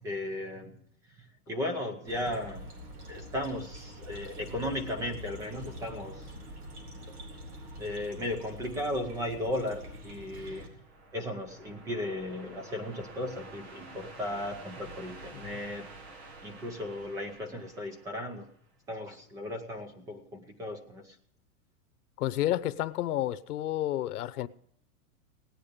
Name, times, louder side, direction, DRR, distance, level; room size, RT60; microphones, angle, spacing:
voice 1, 0.0-0.8 1.2-2.7 3.1-6.3 7.8-10.7 11.1-15.9 16.4-18.5 18.9-21.2, left 1 dB, 5° right, 0.6 m, -36 dB
sound 1, 2.0-10.7, equal, 75° right, 3.7 m, -45 dB
sound 2, 10.3-18.7, right 2 dB, 45° right, 1.7 m, -50 dB
voice 2, 22.2-24.5, left 13 dB, 85° left, 0.9 m, -30 dB
17.5 x 10.5 x 5.2 m
supercardioid pair, 170°, 44 cm